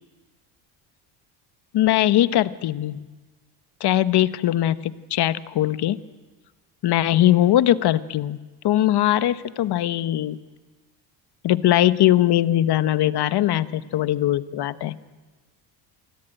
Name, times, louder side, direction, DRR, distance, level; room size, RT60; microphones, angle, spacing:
voice 1, 1.7-3.0 3.8-6.0 6.8-8.4 8.6-10.4 11.4-14.9, left 13 dB, 55° left, 14 dB, 1.1 m, -20 dB
28.0 x 20.0 x 9.1 m, 1.3 s
cardioid pair, 120°, 48 cm